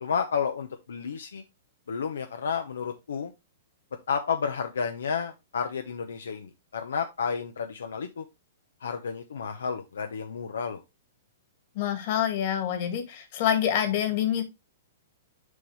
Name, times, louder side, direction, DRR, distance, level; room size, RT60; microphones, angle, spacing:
voice 1, 0.0-1.4 1.9-3.3 4.1-8.2 8.8-10.8, left 6 dB, 85° left, 6 dB, 0.8 m, -31 dB
voice 2, 11.8-14.4, left 10 dB, 50° left, 7 dB, 2.0 m, -26 dB
6.5 x 5.5 x 3.3 m, 0.22 s
hypercardioid pair, 135°, 0 cm